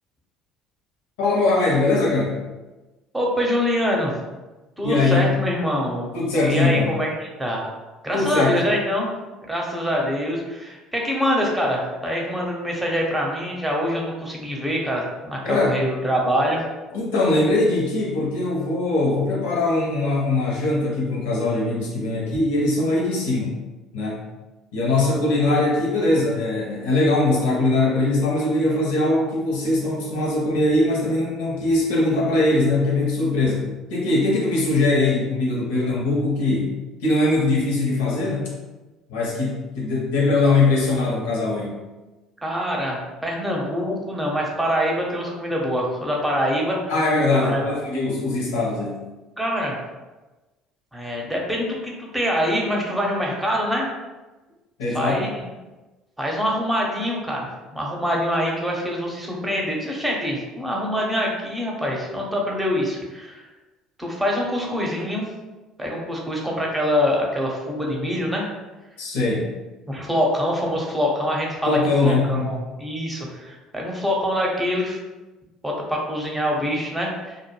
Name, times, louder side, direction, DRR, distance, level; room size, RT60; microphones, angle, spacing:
voice 1, 1.2-2.4 4.8-5.3 6.1-6.9 8.1-8.6 15.4-15.8 16.9-23.6 23.9-24.2 24.7-36.7 37.0-38.5 39.1-41.8 46.9-49.1 54.8-55.2 69.0-69.5 71.6-72.5, left 2 dB, 80° left, -4 dB, 0.8 m, -21 dB
voice 2, 3.1-4.1 4.8-6.1 6.4-7.1 7.4-7.7 8.0-9.1 9.5-16.6 42.4-46.8 47.4-47.7 49.4-49.8 50.9-53.9 54.9-55.3 56.2-63.5 64.0-65.3 65.8-68.5 69.9-75.0 75.6-77.4, equal, 10° right, -2 dB, 0.8 m, -25 dB
2.2 x 2.1 x 3.0 m, 1.2 s
hypercardioid pair, 65°, 0 cm